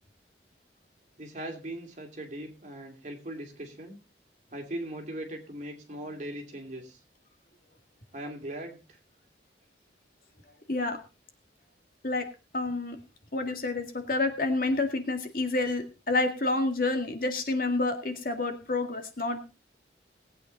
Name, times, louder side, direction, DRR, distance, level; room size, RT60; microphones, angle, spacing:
voice 1, 1.2-4.0 4.5-7.0 8.1-9.0, right 1 dB, 40° right, 2 dB, 2.8 m, -39 dB
voice 2, 12.5-13.0 13.3-19.5, left 2 dB, 50° left, 6 dB, 1.9 m, -29 dB
18.5 x 8.7 x 4.0 m, 0.31 s
head